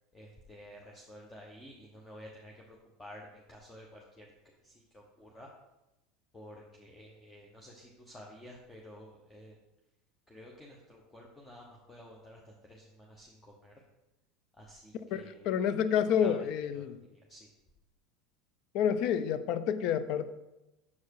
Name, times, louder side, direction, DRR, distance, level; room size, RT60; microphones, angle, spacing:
voice 1, 0.1-4.3 4.6-5.5 6.3-9.6 10.3-13.7 14.6-15.5 16.2-16.3 16.7-17.5, equal, 15° left, -2 dB, 1.1 m, -52 dB
voice 2, 15.1-17.0 18.7-20.4, left 8 dB, 60° left, 13 dB, 0.5 m, -29 dB
7.0 x 4.7 x 4.7 m, 0.97 s
supercardioid pair, 100°, 0 cm